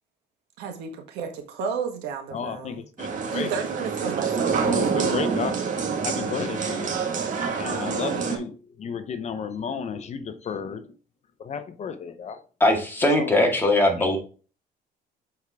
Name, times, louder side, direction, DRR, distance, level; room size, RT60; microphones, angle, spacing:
voice 1, 0.6-2.8 3.3-4.8, right 6 dB, 90° right, 1.5 m, -32 dB
voice 2, 2.3-3.5 4.6-5.6 5.9-6.9 7.6-10.9 11.4-12.4 13.2-13.5 14.0-14.1, left 6 dB, 40° left, 0.7 m, -33 dB
sound 1, 3.0-8.4, right 5 dB, 50° right, 1.7 m, -26 dB
voice 3, 12.6-14.2, left 1 dB, 10° left, 2.0 m, -20 dB
7.1 x 4.7 x 3.5 m
cardioid pair, 110°, 17 cm